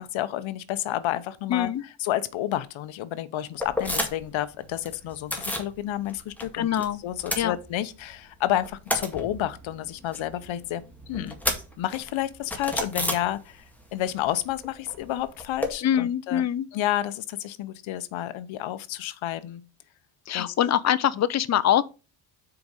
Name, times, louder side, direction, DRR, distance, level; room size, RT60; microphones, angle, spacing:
voice 1, 0.0-1.7 2.0-11.4 11.8-13.6 13.9-16.5 16.7-19.6 20.3-20.5, left 13 dB, 65° left, 0.9 m, -30 dB
voice 2, 1.5-1.8 6.5-7.0 7.4-7.6 15.8-16.7 20.3-21.8, left 10 dB, 35° left, 0.6 m, -24 dB
sound 1, 3.6-4.4 4.6-5.7 6.1-6.9 7.1-8.1 8.4-13.8 14.1-15.7, left 1 dB, 5° left, 2.0 m, -32 dB
6.9 x 5.0 x 5.3 m
cardioid pair, 110°, 50 cm